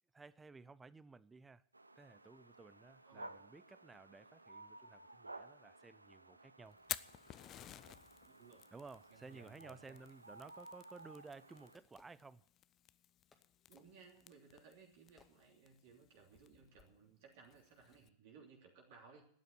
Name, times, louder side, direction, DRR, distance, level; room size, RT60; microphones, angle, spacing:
voice 1, 0.1-1.7 2.0-6.8 8.7-12.5, right 4 dB, 10° right, 0.6 m, -56 dB
sound 1, 1.7-11.8, right 2 dB, 85° right, 0.7 m, -57 dB
voice 2, 3.0-3.4 8.2-8.7 9.1-10.0 13.7-19.3, right 5 dB, 50° right, 3.1 m, -61 dB
Fire, 6.7-18.1, left 11 dB, 30° left, 0.6 m, -53 dB
Fireworks, 11.7-12.9 13.3-16.0, left 3 dB, 15° left, 2.0 m, -73 dB
12.5 x 9.3 x 9.5 m
figure-of-eight pair, 90°, 0 cm